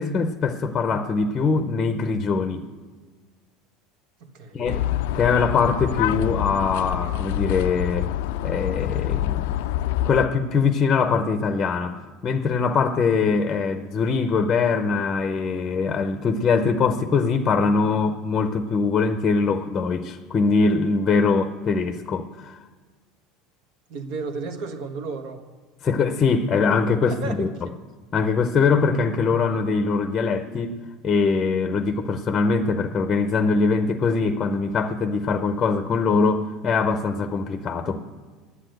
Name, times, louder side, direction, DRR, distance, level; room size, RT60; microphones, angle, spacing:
voice 1, 0.0-2.6 4.5-4.9 5.1-8.1 8.4-9.5 10.0-22.6 25.8-27.5 28.1-30.8 31.0-38.0, left 4 dB, 25° left, 0.7 m, -22 dB
voice 2, 4.2-4.8 23.9-25.4 27.0-27.7, right 4 dB, 65° right, 1.3 m, -33 dB
sound 1, 4.7-10.3, left 13 dB, 85° left, 0.3 m, -26 dB
10.0 x 8.2 x 7.8 m
supercardioid pair, 140°, 0 cm